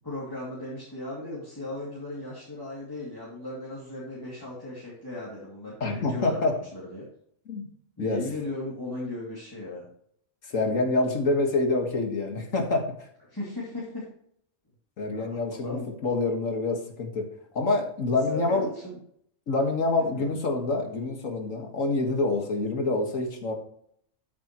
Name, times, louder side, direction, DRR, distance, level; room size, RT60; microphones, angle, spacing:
voice 1, 0.0-7.0 8.0-9.8 13.3-14.0 15.1-15.9 18.3-19.0 20.0-20.4, left 1 dB, 15° left, -7 dB, 2.6 m, -37 dB
voice 2, 5.8-6.5 7.5-7.6 8.0-8.2 10.4-13.1 15.0-17.3 17.5-18.7 19.5-23.5, left 3 dB, 85° left, 3 dB, 2.1 m, -26 dB
13.0 x 7.3 x 3.1 m, 0.67 s
omnidirectional pair, 1.3 m